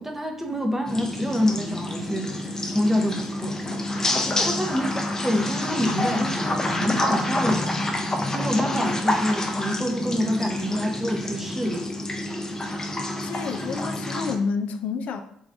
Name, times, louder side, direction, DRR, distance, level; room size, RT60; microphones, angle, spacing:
voice 1, 0.0-3.6 3.9-5.0 5.2-7.7 8.3-11.9, equal, 15° right, 2 dB, 0.8 m, -27 dB
sound 1, 0.9-14.4, left 1 dB, 20° left, 0.7 m, -28 dB
voice 2, 13.1-15.2, left 5 dB, 65° left, 8 dB, 0.4 m, -29 dB
3.6 x 3.1 x 2.6 m, 0.71 s
hypercardioid pair, 55°, 3 cm